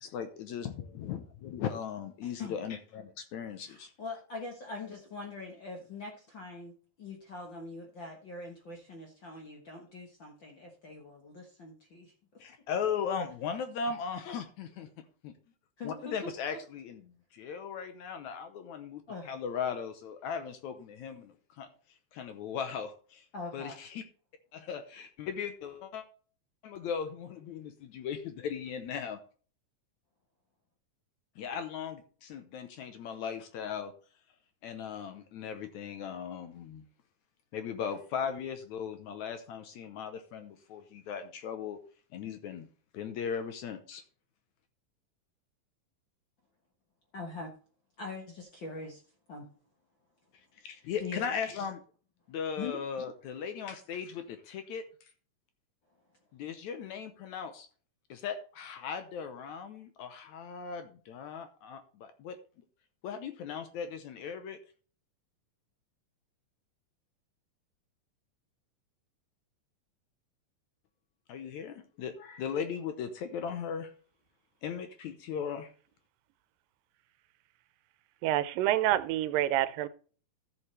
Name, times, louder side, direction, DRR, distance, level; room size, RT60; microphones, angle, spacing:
voice 1, 0.0-3.9 12.4-14.9 15.2-15.3 15.8-17.0 17.3-21.7 22.1-23.3 23.5-24.0 24.5-26.0 26.6-29.2 31.4-33.9 34.6-36.8 37.5-41.8 42.1-42.7 42.9-44.0 50.6-51.8 52.3-54.9 56.3-57.7 58.1-62.4 63.0-64.6 71.3-73.9 74.6-75.7, left 7 dB, 70° left, 1.9 m, -38 dB
voice 2, 2.2-2.6 3.6-12.1 15.8-16.3 19.1-19.3 23.3-23.8 47.1-47.5 48.0-49.0 49.3-49.5 50.9-51.2 52.6-52.8, left 3 dB, 55° left, 1.3 m, -43 dB
voice 3, 78.2-79.9, right 13 dB, 85° right, 2.3 m, -27 dB
13.5 x 7.0 x 3.3 m
omnidirectional pair, 3.9 m